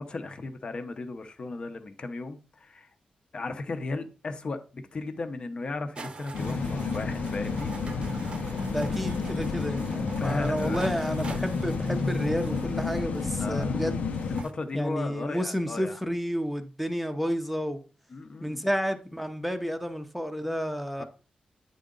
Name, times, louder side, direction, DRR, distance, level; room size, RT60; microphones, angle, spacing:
voice 1, 0.0-2.9 3.3-7.7 10.2-11.0 13.4-13.8 14.3-16.0 18.1-18.6 21.0-21.1, left 3 dB, 40° left, 0.8 m, -35 dB
sound 1, 6.0-14.5, right 4 dB, 40° right, 0.7 m, -45 dB
sound 2, 6.3-14.4, left 4 dB, 75° left, 0.8 m, -30 dB
voice 2, 8.7-14.0 14.7-17.8 18.4-21.0, equal, ahead, 0.7 m, -31 dB
9.2 x 3.8 x 3.8 m
wide cardioid pair, 155°, 3 cm